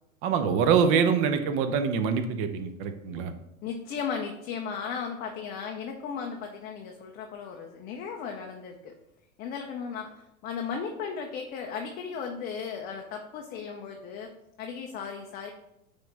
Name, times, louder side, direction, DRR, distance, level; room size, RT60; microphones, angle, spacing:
voice 1, 0.2-3.3, right 6 dB, 30° right, 9 dB, 0.7 m, -25 dB
voice 2, 3.6-8.9 9.4-14.3 14.6-15.5, left 6 dB, 20° left, 3 dB, 0.5 m, -36 dB
8.9 x 3.5 x 4.1 m, 0.85 s
figure-of-eight pair, 95°, 44 cm